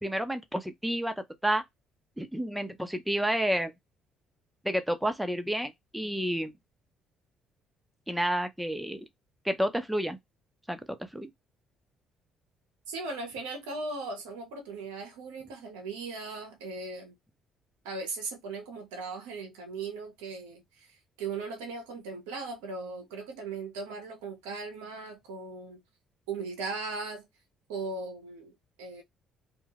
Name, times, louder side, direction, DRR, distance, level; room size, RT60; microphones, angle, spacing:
voice 1, 0.0-1.1 1.4-1.6 2.2-3.7 4.6-6.5 8.1-9.0 9.4-10.2 10.7-11.3, equal, 5° right, 0.7 m, -30 dB
voice 2, 12.9-17.1 17.8-25.8 26.3-27.3 27.7-29.0, right 3 dB, 85° right, 0.7 m, -38 dB
2.3 x 2.2 x 3.3 m
hypercardioid pair, 55°, 0 cm